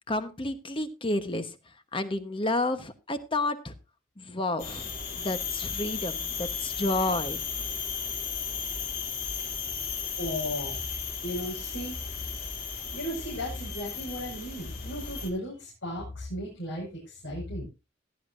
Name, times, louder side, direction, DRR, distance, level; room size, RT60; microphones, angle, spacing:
voice 1, 0.1-1.5 1.9-3.7 4.2-7.4, left 2 dB, 25° left, 9 dB, 1.1 m, -30 dB
sound 1, 4.6-15.3, left 6 dB, 50° left, 3.2 m, -35 dB
voice 2, 10.2-10.8 11.2-12.0 12.9-17.7, equal, 75° left, -4 dB, 5.7 m, -35 dB
17.0 x 11.0 x 2.6 m, 0.27 s
head